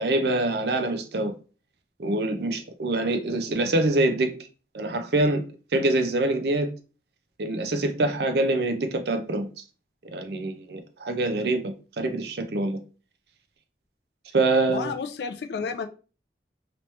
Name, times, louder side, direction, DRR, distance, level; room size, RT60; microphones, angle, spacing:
voice 1, 0.0-1.3 2.0-4.5 4.7-5.4 5.7-6.7 7.4-9.5 10.1-12.8 14.3-14.9, right 2 dB, 65° right, 0.5 m, -25 dB
voice 2, 14.7-15.9, left 5 dB, 65° left, 0.3 m, -31 dB
3.0 x 2.9 x 3.1 m
head